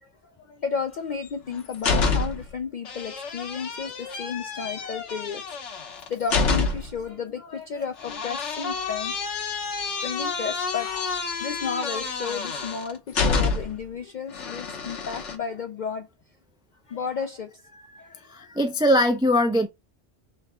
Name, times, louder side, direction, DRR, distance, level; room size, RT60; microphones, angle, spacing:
voice 1, 0.0-5.7 6.1-9.2 10.0-16.1 16.9-17.6 18.0-18.3, left 6 dB, 60° left, 0.5 m, -33 dB
sound 1, 1.2-2.5 2.9-7.0 8.0-13.9 14.3-15.4, left 4 dB, 85° left, 1.3 m, -28 dB
voice 2, 18.3-19.7, equal, 5° right, 0.4 m, -22 dB
4.1 x 3.3 x 3.5 m
omnidirectional pair, 1.2 m